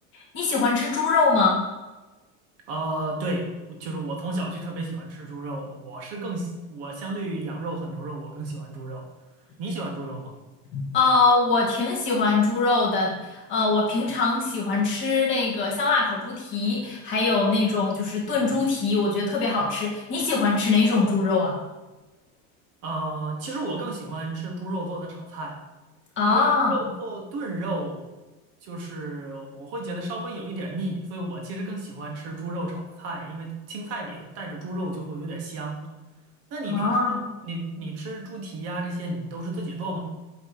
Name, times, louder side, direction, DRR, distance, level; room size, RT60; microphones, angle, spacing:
voice 1, 0.1-1.6 10.7-21.6 26.2-26.8 36.7-37.3, left 3 dB, 30° left, -3 dB, 1.5 m, -23 dB
voice 2, 2.7-9.0 9.6-10.3 22.8-25.6 26.3-28.1 28.6-35.8 36.5-37.1 37.4-40.0, right 2 dB, 35° right, 0 dB, 1.1 m, -32 dB
8.2 x 3.0 x 5.7 m, 1.1 s
supercardioid pair, 175°, 41 cm